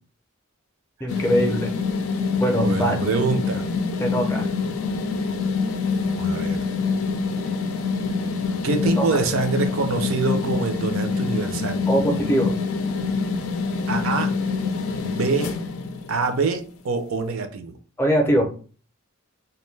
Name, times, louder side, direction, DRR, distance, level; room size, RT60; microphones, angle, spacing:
voice 1, 1.0-1.7 2.4-3.0 4.0-4.5 9.0-9.1 11.9-12.6 18.0-18.5, right 1 dB, 10° left, 2 dB, 0.5 m, -22 dB
sound 1, 1.1-16.4, left 4 dB, 75° left, 0.4 m, -25 dB
voice 2, 2.6-3.7 6.0-6.6 8.6-11.8 13.9-14.3 15.0-15.5 16.1-17.7, right 4 dB, 65° right, 8 dB, 0.4 m, -25 dB
2.6 x 2.2 x 3.1 m, 0.40 s
head